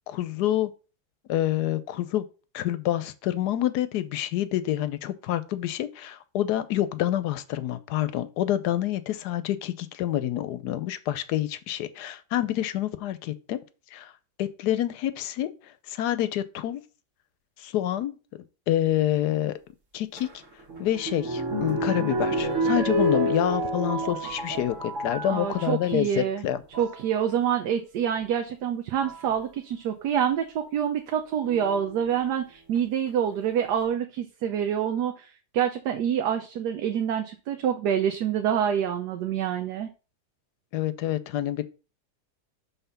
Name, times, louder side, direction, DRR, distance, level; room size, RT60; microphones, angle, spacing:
voice 1, 0.1-0.7 1.3-2.3 2.5-13.6 13.9-14.1 14.4-16.8 17.6-19.6 19.9-20.3 20.8-26.6 40.7-41.6, left 12 dB, 85° left, 1.2 m, -27 dB
sound 1, 20.2-25.8 26.5-27.0 28.2-28.3 29.0-29.3 31.5-32.1 32.8-32.9 33.1-33.2, right 1 dB, 50° right, 1.8 m, -29 dB
voice 2, 25.3-26.4 26.8-39.9, right 8 dB, 80° right, 1.3 m, -27 dB
5.7 x 4.1 x 5.7 m
omnidirectional pair, 1.7 m